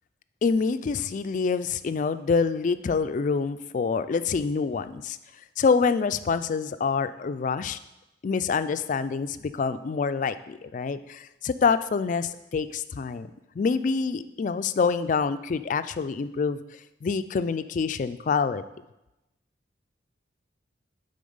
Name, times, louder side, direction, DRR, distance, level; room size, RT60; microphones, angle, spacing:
voice 1, 0.4-5.2 5.6-7.8 8.2-13.3 13.6-16.6 17.0-18.6, left 5 dB, 45° left, 12 dB, 0.3 m, -26 dB
8.5 x 4.0 x 5.4 m, 0.94 s
head